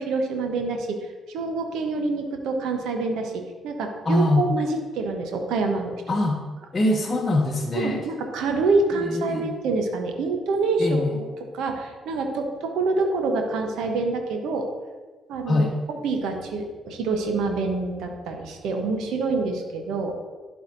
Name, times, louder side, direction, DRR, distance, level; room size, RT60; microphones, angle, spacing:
voice 1, 0.0-6.0 7.7-14.7 15.3-15.7 16.0-20.1, right 3 dB, 65° right, 4 dB, 0.9 m, -26 dB
voice 2, 4.0-4.5 6.1-6.4 6.7-8.0 8.9-9.6 10.8-11.1 15.5-15.7, left 1 dB, 30° left, 0 dB, 0.8 m, -23 dB
11.5 x 4.6 x 2.6 m, 1.3 s
hypercardioid pair, 45°, 0 cm